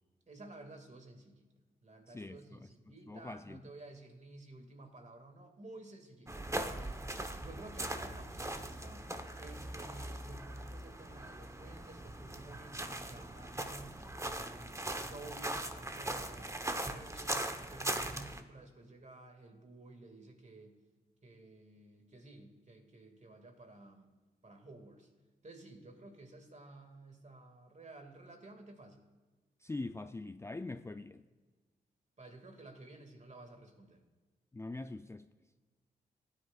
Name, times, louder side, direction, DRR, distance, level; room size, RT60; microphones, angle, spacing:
voice 1, 0.3-1.5 1.8-7.1 7.4-9.1 9.4-20.8 21.2-24.1 24.4-25.1 25.4-29.0 32.2-34.0, right 2 dB, 40° right, 5 dB, 2.2 m, -53 dB
voice 2, 2.1-2.7 3.1-3.6 29.6-31.2 34.5-35.3, left 2 dB, 15° left, 9 dB, 0.4 m, -43 dB
sound 1, 6.3-18.4, right 1 dB, 15° right, 1.1 m, -40 dB
15.5 x 9.7 x 2.4 m, 1.3 s
supercardioid pair, 40°, 19 cm